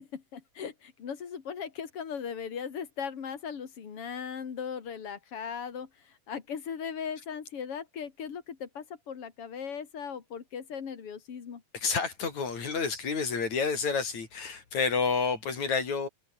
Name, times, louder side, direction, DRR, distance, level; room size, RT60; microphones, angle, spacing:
voice 1, 0.0-11.6, left 7 dB, 50° left, 3.2 m, -38 dB
voice 2, 11.7-16.1, left 5 dB, 65° left, 5.5 m, -29 dB
omnidirectional pair, 3.5 m